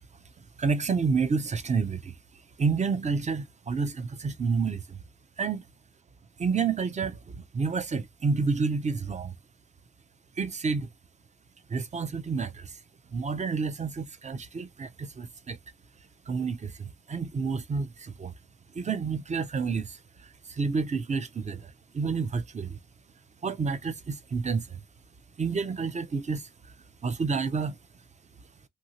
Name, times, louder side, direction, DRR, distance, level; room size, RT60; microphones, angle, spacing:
voice 1, 0.6-2.2 2.6-5.0 5.4-5.6 6.4-9.4 10.4-10.9 11.7-12.8 13.1-15.6 16.3-18.3 18.7-22.8 23.4-24.8 25.4-26.5 27.0-27.8, right 5 dB, 25° right, 0.5 m, -29 dB
2.7 x 2.7 x 2.8 m
cardioid pair, 90°, 30 cm